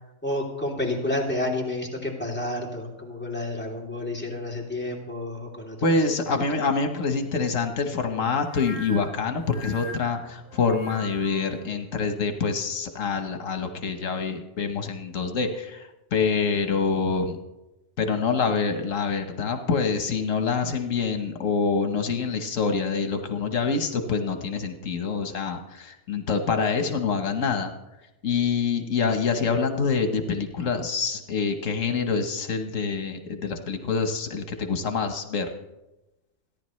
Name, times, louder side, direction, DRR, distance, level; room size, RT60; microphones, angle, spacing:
voice 1, 0.2-5.8 6.2-6.4, left 1 dB, 10° left, -2 dB, 3.0 m, -30 dB
voice 2, 5.8-15.8 16.1-17.4 18.0-27.7 28.2-35.5, left 5 dB, 85° left, 6 dB, 1.5 m, -26 dB
sound 1, 8.4-11.5, left 2 dB, 80° right, 2.7 m, -41 dB
29.0 x 10.5 x 3.2 m, 0.99 s
omnidirectional pair, 1.3 m